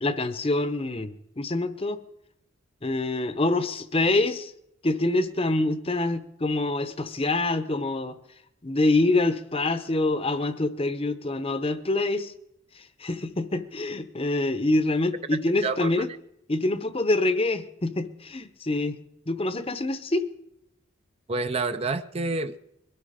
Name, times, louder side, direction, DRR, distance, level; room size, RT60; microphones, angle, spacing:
voice 1, 0.0-2.0 2.8-4.5 4.8-8.2 8.6-12.3 12.7-16.1 16.5-19.0 19.3-20.3, left 2 dB, 25° left, 12 dB, 0.8 m, -26 dB
voice 2, 21.3-22.6, right 3 dB, 30° right, 10 dB, 0.5 m, -28 dB
22.0 x 12.5 x 5.0 m, 0.81 s
head